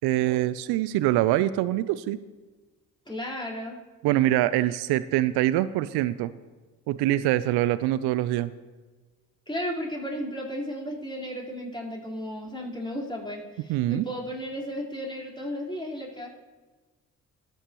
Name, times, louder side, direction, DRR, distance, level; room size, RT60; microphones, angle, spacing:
voice 1, 0.0-2.2 4.0-6.3 6.9-8.5 13.7-14.1, right 14 dB, 70° right, 15 dB, 0.5 m, -24 dB
voice 2, 3.1-3.8 9.5-16.3, equal, 10° left, -3 dB, 4.3 m, -34 dB
19.5 x 9.2 x 3.1 m, 1.3 s
hypercardioid pair, 45°, 41 cm